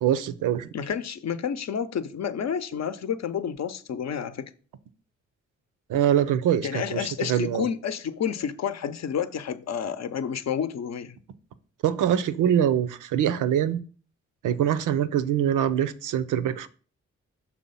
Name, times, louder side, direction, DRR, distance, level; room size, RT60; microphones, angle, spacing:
voice 1, 0.0-0.7 5.9-7.7 11.8-13.8 14.4-16.7, right 10 dB, 80° right, 0.6 m, -24 dB
voice 2, 0.7-4.5 6.6-11.2, left 7 dB, 60° left, 0.7 m, -30 dB
6.1 x 3.3 x 5.5 m
supercardioid pair, 50°, 31 cm